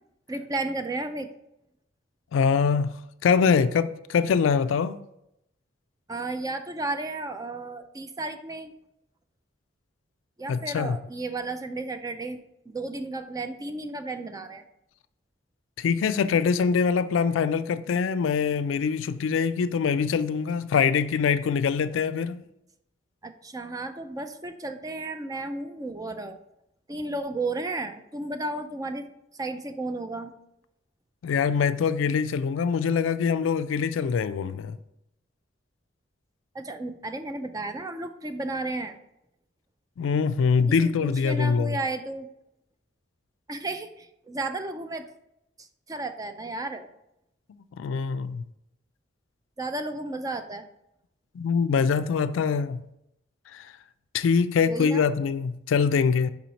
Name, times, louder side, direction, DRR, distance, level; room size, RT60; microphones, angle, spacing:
voice 1, 0.3-1.3 6.1-8.7 10.4-12.4 12.7-14.6 23.2-26.4 26.9-29.1 29.4-30.3 36.5-39.0 40.7-42.3 43.5-45.1 45.6-46.9 49.6-50.6 54.7-55.1, right 2 dB, 20° right, 0.4 m, -33 dB
voice 2, 2.3-5.0 10.5-11.0 15.8-22.4 31.2-34.8 40.0-41.8 47.8-48.4 51.3-52.8 53.5-53.7 54.1-56.3, left 6 dB, 75° left, 0.3 m, -24 dB
5.6 x 4.4 x 4.0 m
head